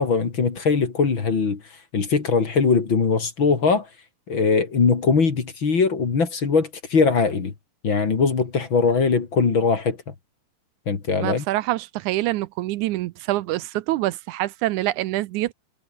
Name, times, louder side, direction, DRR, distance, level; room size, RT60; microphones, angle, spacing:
voice 1, 0.0-1.6 1.9-3.9 4.3-7.5 7.8-10.0 10.9-11.4, left 5 dB, 40° left, 3.2 m, -21 dB
voice 2, 11.2-15.5, right 16 dB, 80° right, 2.1 m, -25 dB
omnidirectional pair, 3.6 m